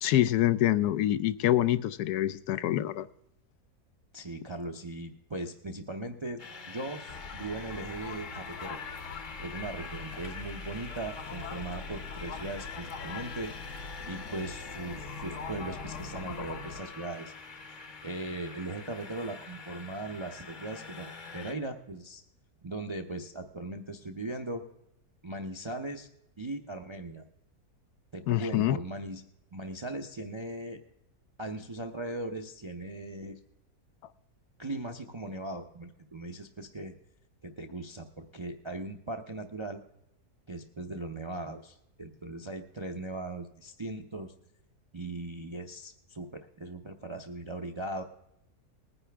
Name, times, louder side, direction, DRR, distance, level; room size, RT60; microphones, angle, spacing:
voice 1, 0.0-3.1 28.3-28.8, left 13 dB, 85° left, 13 dB, 1.1 m, -26 dB
voice 2, 4.1-8.8 9.4-13.5 14.1-17.3 17.7-22.2 22.6-24.6 25.2-26.1 26.4-27.2 28.1-29.2 29.5-30.8 31.4-33.4 34.6-36.9 37.4-39.8 40.5-44.3 44.9-48.0, right 2 dB, 40° right, 4 dB, 0.4 m, -39 dB
sound 1, 6.4-21.5, left 4 dB, 40° left, 0.9 m, -45 dB
sound 2, 7.1-16.8, left 4 dB, 60° left, 1.1 m, -42 dB
20.0 x 9.8 x 3.4 m, 0.83 s
omnidirectional pair, 1.6 m